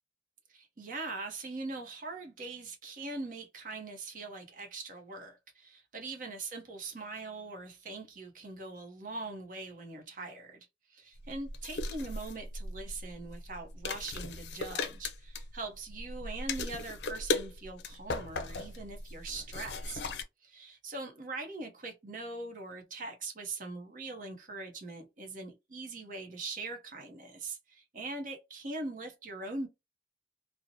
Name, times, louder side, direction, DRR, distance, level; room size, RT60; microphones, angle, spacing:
voice 1, 0.5-20.1 20.4-29.7, right 3 dB, 50° right, 0.7 m, -42 dB
sound 1, 11.2-20.2, left 3 dB, 80° left, 0.4 m, -38 dB
2.7 x 2.0 x 2.6 m
head